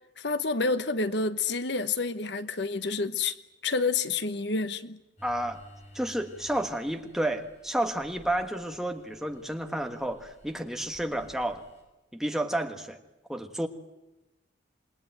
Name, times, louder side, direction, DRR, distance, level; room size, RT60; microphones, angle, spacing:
voice 1, 0.2-3.4 3.6-5.0, left 4 dB, 60° left, 1.1 m, -28 dB
sound 1, 5.2-11.8, equal, 35° left, 7.9 m, -55 dB
voice 2, 5.2-5.6 5.9-11.6 12.1-13.0 13.3-13.7, right 1 dB, ahead, 1.4 m, -31 dB
27.5 x 21.0 x 9.2 m
head